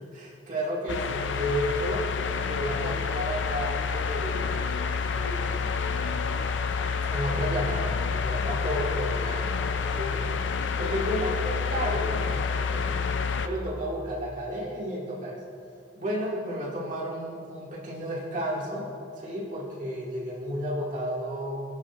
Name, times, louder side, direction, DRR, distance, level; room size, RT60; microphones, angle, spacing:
voice 1, 0.0-2.1 2.5-4.6 5.0-5.8 7.1-9.5 9.9-10.2 10.8-12.4 12.7-15.4 15.9-18.9 19.2-21.6, equal, 40° right, -6 dB, 2.2 m, -32 dB
sound 1, 0.9-13.5, left 5 dB, 65° left, 0.5 m, -28 dB
17.5 x 7.4 x 2.5 m, 2.4 s
head